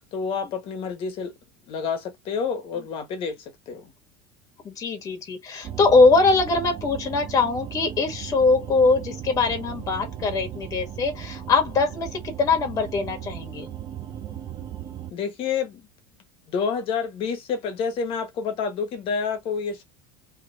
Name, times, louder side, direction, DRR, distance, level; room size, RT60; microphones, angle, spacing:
voice 1, 0.1-1.3 1.7-3.9 15.1-15.9 16.5-19.8, left 6 dB, 45° left, 1.4 m, -29 dB
voice 2, 4.6-13.7, left 3 dB, 25° left, 1.6 m, -22 dB
sound 1, 5.6-15.1, right 10 dB, 35° right, 0.8 m, -37 dB
3.2 x 3.1 x 2.7 m
supercardioid pair, 135°, 13 cm